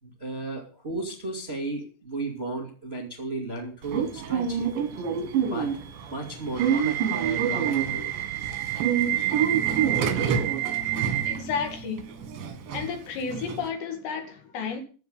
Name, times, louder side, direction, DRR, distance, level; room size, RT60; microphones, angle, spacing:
voice 1, 0.0-4.7 5.4-5.8 6.1-8.2 10.4-10.7 11.3-11.4, right 2 dB, 20° right, 1.6 m, -35 dB
Subway metro underground / Alarm, 3.9-13.7, right 8 dB, 90° right, 4.2 m, -27 dB
voice 2, 11.3-12.1 12.7-14.8, left 6 dB, 75° left, 4.3 m, -32 dB
14.0 x 5.7 x 9.0 m
omnidirectional pair, 5.0 m